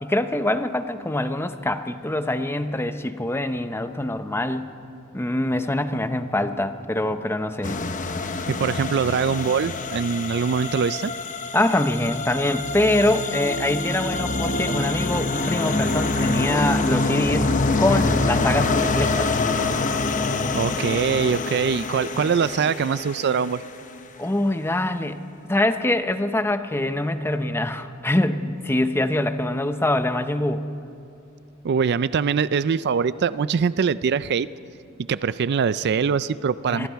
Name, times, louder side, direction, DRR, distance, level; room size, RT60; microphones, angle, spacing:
voice 1, 0.0-4.7 5.1-7.8 11.5-19.3 24.2-30.6 36.7-36.9, left 1 dB, 10° left, 9 dB, 0.8 m, -24 dB
sound 1, 7.6-23.8, left 3 dB, 40° left, 0.9 m, -25 dB
voice 2, 8.5-11.1 20.5-23.6 31.6-34.5 35.1-36.9, right 6 dB, 55° right, 16 dB, 0.4 m, -23 dB
26.5 x 22.5 x 4.6 m, 2.6 s
head